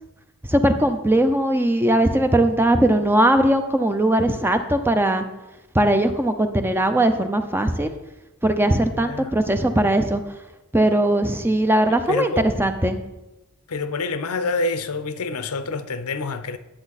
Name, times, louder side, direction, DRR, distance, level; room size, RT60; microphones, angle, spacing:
voice 1, 0.5-5.2 5.7-7.9 8.4-10.2 10.7-13.0, right 1 dB, 10° right, 0.6 m, -19 dB
voice 2, 8.9-9.3 11.9-12.5 13.7-16.6, left 3 dB, 85° left, 0.7 m, -27 dB
11.0 x 8.0 x 4.1 m
head